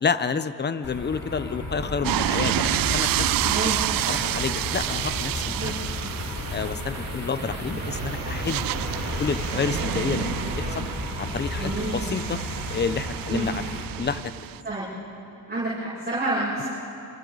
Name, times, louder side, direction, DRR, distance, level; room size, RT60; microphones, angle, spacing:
voice 1, 0.0-3.3 3.6-3.7 4.0-5.7 6.5-8.6 9.2-10.8 11.2-12.4 12.7-13.7 14.0-14.3, left 5 dB, 30° left, 12 dB, 0.9 m, -29 dB
sound 1, 0.8-13.8, left 2 dB, 60° left, 4.5 m, -33 dB
sound 2, 2.0-14.6, right 15 dB, 80° right, 0.5 m, -29 dB
voice 2, 3.4-3.8 5.5-6.1 11.6-12.0 13.3-13.5 14.6-14.9 15.3-16.6, right 2 dB, 30° right, -9 dB, 7.4 m, -29 dB
sound 3, 3.5-12.1, right 3 dB, 50° right, 3.5 m, -39 dB
28.5 x 28.0 x 4.1 m, 2.9 s
cardioid pair, 100°, 34 cm